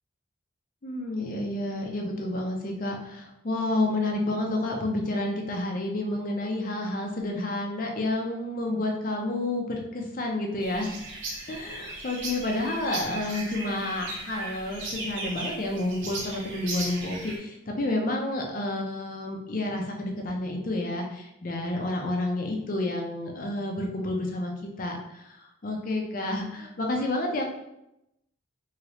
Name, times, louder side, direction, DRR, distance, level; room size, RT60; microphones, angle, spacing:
voice 1, 0.8-10.9 11.5-24.5 24.8-25.4 25.6-27.5, left 2 dB, 40° left, 2 dB, 0.5 m, -30 dB
sound 1, 10.6-17.4, right 2 dB, 65° right, 0.8 m, -37 dB
3.1 x 2.8 x 2.8 m, 0.86 s
head